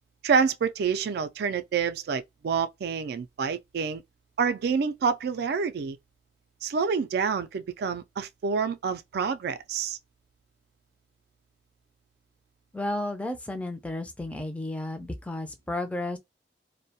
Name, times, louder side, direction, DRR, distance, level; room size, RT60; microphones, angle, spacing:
voice 1, 0.2-4.0 4.4-6.0 6.6-10.0, right 6 dB, 65° right, 0.3 m, -27 dB
voice 2, 12.7-16.2, left 1 dB, 10° left, 0.4 m, -33 dB
2.3 x 2.1 x 2.7 m
head